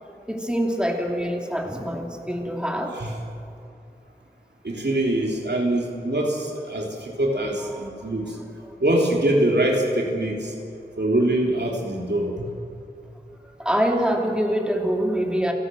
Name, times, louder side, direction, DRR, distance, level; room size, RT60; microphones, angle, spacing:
voice 1, 0.3-3.0 7.7-7.9 8.6-8.8 13.6-15.5, equal, 5° right, 1 dB, 2.8 m, -25 dB
voice 2, 4.6-8.3 8.8-10.5 11.0-12.5, right 1 dB, 85° right, 0 dB, 3.1 m, -23 dB
30.0 x 12.0 x 7.6 m, 2.5 s
wide cardioid pair, 50°, 17 cm